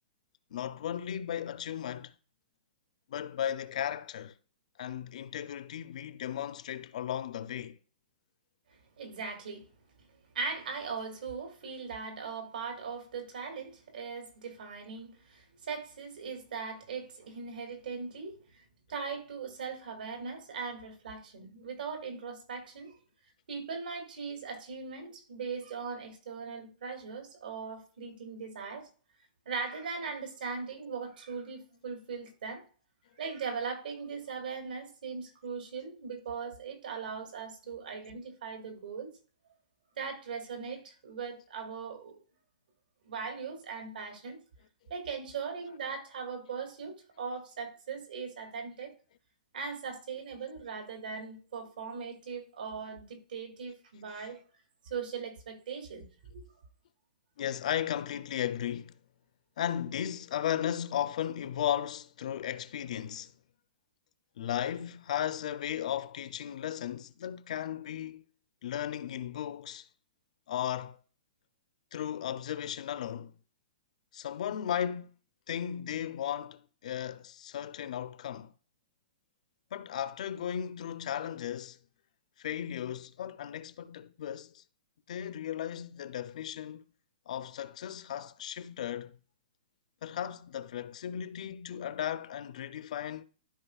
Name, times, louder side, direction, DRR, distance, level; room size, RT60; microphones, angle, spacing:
voice 1, 0.5-2.1 3.1-4.3 4.8-7.8 54.1-54.3 57.4-58.9 59.6-63.3 64.4-68.2 68.6-69.9 70.5-71.0 71.9-73.3 74.1-75.1 75.5-78.5 79.7-81.8 82.4-84.6 85.1-86.8 87.3-89.2 90.0-93.2, left 10 dB, 50° left, 0.5 m, -35 dB
voice 2, 9.0-9.7 10.3-18.6 18.9-23.0 23.5-28.9 29.5-32.6 33.2-39.1 40.0-42.2 43.0-44.4 44.9-48.9 49.5-54.4 54.8-56.4, right 5 dB, 75° right, 2.3 m, -39 dB
13.0 x 4.8 x 2.3 m
hypercardioid pair, 170°, 5 cm